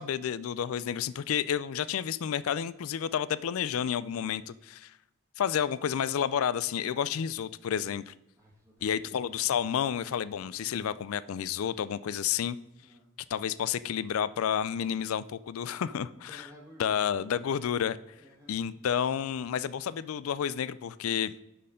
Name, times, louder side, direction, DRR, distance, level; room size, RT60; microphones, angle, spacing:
voice 1, 0.0-4.9 5.4-8.1 8.8-12.6 13.3-16.5 16.8-18.0 18.5-21.3, left 8 dB, 85° left, 17 dB, 0.4 m, -30 dB
voice 2, 8.4-9.1 10.5-10.8 12.8-13.1 16.2-16.9 18.1-18.7, equal, 15° right, -3 dB, 1.7 m, -55 dB
11.0 x 4.3 x 5.0 m, 0.93 s
head